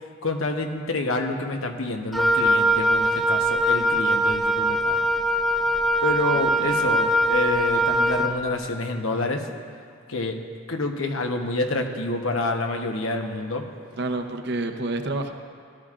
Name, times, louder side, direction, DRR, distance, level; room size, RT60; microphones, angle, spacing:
voice 1, 0.2-5.0 6.0-9.5 10.1-10.4 10.7-13.7, left 2 dB, 85° left, 4 dB, 1.0 m, -28 dB
Wind instrument woodwind instrument, 2.1-8.4, right 1 dB, ahead, 0.3 m, -22 dB
voice 2, 6.3-6.9 14.0-15.3, right 2 dB, 55° right, 6 dB, 0.7 m, -29 dB
18.0 x 12.5 x 2.5 m, 2.2 s
head